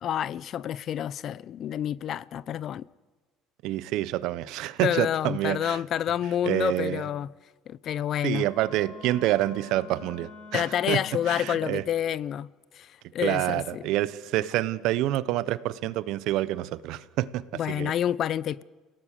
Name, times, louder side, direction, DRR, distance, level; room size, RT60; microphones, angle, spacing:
voice 1, 0.0-2.9 4.8-7.3 7.7-8.4 10.5-12.5 12.8-13.8 17.5-18.6, left 10 dB, 55° left, 0.7 m, -28 dB
voice 2, 3.6-5.8 6.4-7.1 8.2-11.8 13.2-17.9, right 15 dB, 70° right, 1.0 m, -28 dB
Wind instrument woodwind instrument, 8.3-11.9, left 3 dB, 75° left, 4.9 m, -46 dB
30.0 x 17.5 x 6.7 m
hypercardioid pair, 70°, 0 cm